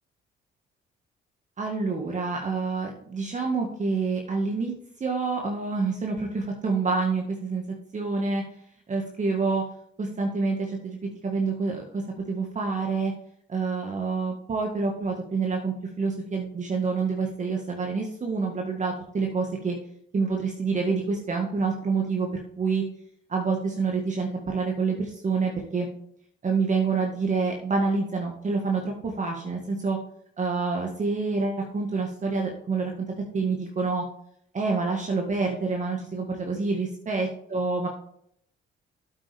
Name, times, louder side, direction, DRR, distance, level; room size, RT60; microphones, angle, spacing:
voice 1, 1.6-4.7 5.0-7.6 7.9-8.4 8.9-9.6 10.0-11.0 11.2-12.0 12.3-13.1 13.5-19.8 20.1-22.3 22.6-22.8 23.3-25.9 26.4-30.0 30.4-33.1 33.3-34.0 34.5-37.9, right 4 dB, 40° right, 1 dB, 1.8 m, -27 dB
8.8 x 8.3 x 3.5 m, 0.69 s
cardioid pair, 90°, 20 cm